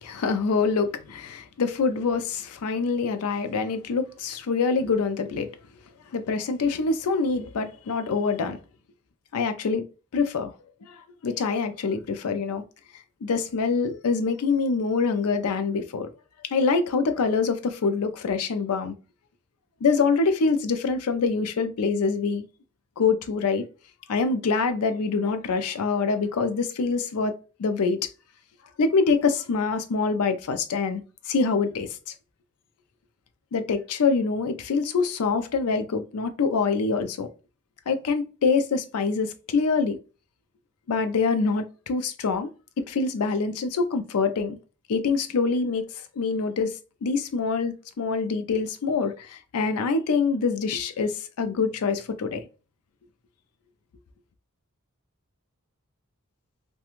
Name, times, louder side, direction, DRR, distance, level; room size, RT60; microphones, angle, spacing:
voice 1, 0.0-5.5 6.1-8.6 9.3-9.9 10.1-10.5 10.9-12.6 13.2-16.1 16.5-18.9 19.8-22.5 23.0-23.7 24.1-28.0 28.8-32.1 33.5-37.3 37.9-40.0 40.9-42.5 42.8-44.6 44.9-45.9 46.2-52.5, left 4 dB, 85° left, 0.4 m, -25 dB
2.4 x 2.2 x 2.9 m
head